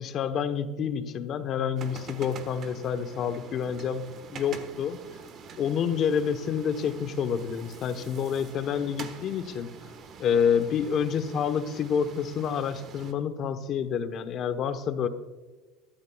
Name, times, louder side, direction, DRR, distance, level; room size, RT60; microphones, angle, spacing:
voice 1, 0.0-4.0 4.3-5.0 5.6-9.7 10.2-15.1, left 7 dB, 40° left, 9 dB, 1.0 m, -28 dB
sound 1, 1.8-13.1, right 5 dB, 40° right, 1.2 m, -45 dB
21.5 x 13.0 x 2.3 m, 1.3 s
cardioid pair, 150°, 0 cm